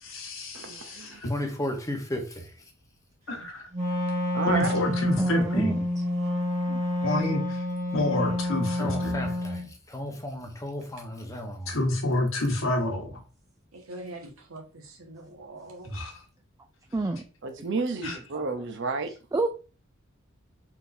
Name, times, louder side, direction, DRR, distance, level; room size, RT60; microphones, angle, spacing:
voice 1, 0.0-1.3 3.3-3.7 4.5-5.8 6.7-7.6 7.9-9.1 11.7-13.2 15.8-16.1 18.0-18.2, left 1 dB, 70° left, 1.3 m, -29 dB
voice 2, 0.5-1.2 4.3-4.7 17.4-19.1, right 3 dB, 60° right, 0.7 m, -31 dB
voice 3, 1.2-2.5 8.8-11.8, left 1 dB, 15° left, 0.9 m, -34 dB
Wind instrument woodwind instrument, 3.7-9.7, left 1 dB, 35° right, 1.4 m, -28 dB
voice 4, 5.2-5.8 16.9-17.2 18.3-18.4 19.3-19.5, right 2 dB, 15° right, 0.3 m, -26 dB
voice 5, 13.7-15.9, right 1 dB, 85° right, 1.4 m, -43 dB
4.6 x 3.7 x 2.6 m
head